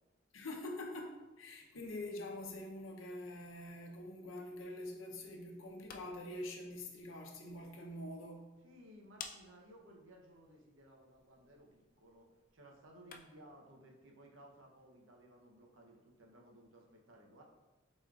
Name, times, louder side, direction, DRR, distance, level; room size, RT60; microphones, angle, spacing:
voice 1, 0.3-8.5, left 1 dB, 85° left, 1 dB, 0.7 m, -45 dB
sound 1, 5.6-13.5, left 6 dB, 45° left, 0.4 m, -57 dB
voice 2, 8.6-17.4, right 1 dB, 85° right, 0 dB, 0.8 m, -59 dB
4.7 x 4.2 x 2.4 m, 1.1 s
head